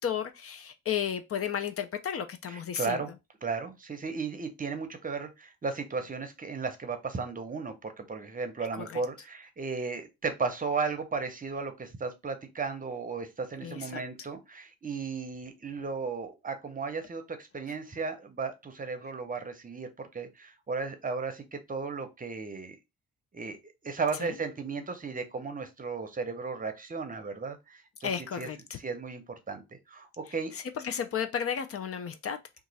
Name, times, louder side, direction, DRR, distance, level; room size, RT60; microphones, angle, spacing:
voice 1, 0.0-3.0 8.8-9.0 13.6-14.0 24.2-24.3 28.0-28.8 30.5-32.4, left 8 dB, 50° left, 0.6 m, -33 dB
voice 2, 2.5-3.1 3.4-22.8 23.3-28.1 28.4-28.5 28.8-29.6 29.9-30.5, right 4 dB, 25° right, 0.7 m, -35 dB
2.9 x 2.4 x 4.0 m
cardioid pair, 90°, 30 cm